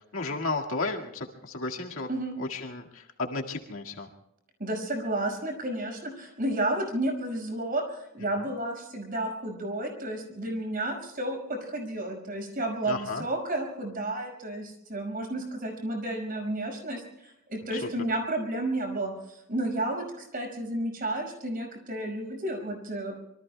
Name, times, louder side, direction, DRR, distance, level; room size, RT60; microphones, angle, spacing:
voice 1, 0.1-2.1 2.4-4.1 12.9-13.2 17.7-17.9, left 3 dB, 75° left, 1 dB, 1.9 m, -33 dB
voice 2, 4.6-23.1, right 1 dB, 45° right, 3 dB, 5.6 m, -32 dB
26.5 x 24.0 x 2.2 m, 0.85 s
head